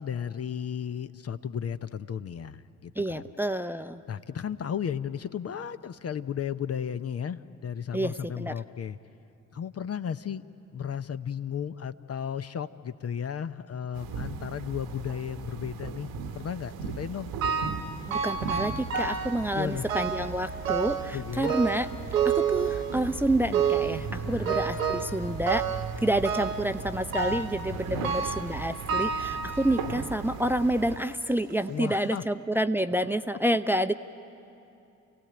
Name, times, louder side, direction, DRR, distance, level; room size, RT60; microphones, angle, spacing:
voice 1, 0.0-3.3 4.1-9.0 9.5-10.4 10.7-17.3 19.1-19.2 19.5-19.8 21.1-21.5 24.1-24.6 27.7-28.1 31.7-32.2, left 8 dB, 40° left, 12 dB, 0.8 m, -34 dB
voice 2, 3.0-4.0 7.9-8.5 18.1-21.9 22.2-25.7 26.0-33.9, right 1 dB, 5° right, 10 dB, 0.7 m, -28 dB
sound 1, 13.9-31.0, right 5 dB, 65° right, 1.2 m, -38 dB
sound 2, 17.4-17.9 18.1-19.4 19.9-20.3 20.7-21.1 21.4-23.1 23.5-24.0 24.5-25.2 25.5-25.9 26.2-26.7 27.1-27.6 28.0-28.5 28.9-30.0 30.6-30.7 31.5-31.6 32.1-32.2, right 7 dB, 85° right, 1.1 m, -29 dB
29.0 x 16.5 x 8.8 m, 2.8 s
hypercardioid pair, 45°, 39 cm